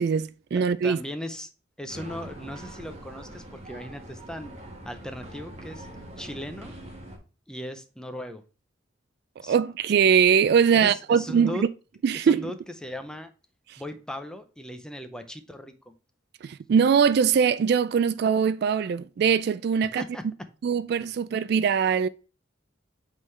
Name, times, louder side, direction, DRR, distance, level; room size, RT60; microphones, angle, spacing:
voice 1, 0.0-1.0 9.5-11.5 12.0-12.5 16.4-20.0 20.6-22.1, right 7 dB, 55° right, 0.3 m, -22 dB
voice 2, 0.8-1.5 1.8-4.6 4.8-5.9 6.2-6.7 7.5-8.4 9.4-9.6 10.7-11.7 12.1-12.6 12.8-13.3 13.8-15.7 20.0-20.2, left 1 dB, 5° left, 0.6 m, -37 dB
sound 1, 1.9-7.2, right 1 dB, 35° right, 1.5 m, -43 dB
8.1 x 3.8 x 3.2 m
head